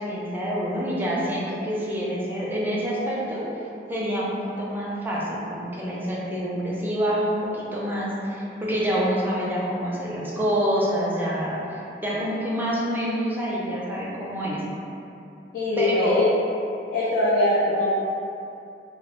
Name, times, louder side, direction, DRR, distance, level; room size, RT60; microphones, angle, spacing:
voice 1, 0.0-3.4 3.9-4.3 4.6-14.6 15.8-16.2, equal, 10° right, -6 dB, 0.4 m, -27 dB
voice 2, 15.5-16.3 16.9-17.9, left 2 dB, 65° left, -7 dB, 0.4 m, -22 dB
2.7 x 2.0 x 2.9 m, 2.7 s
head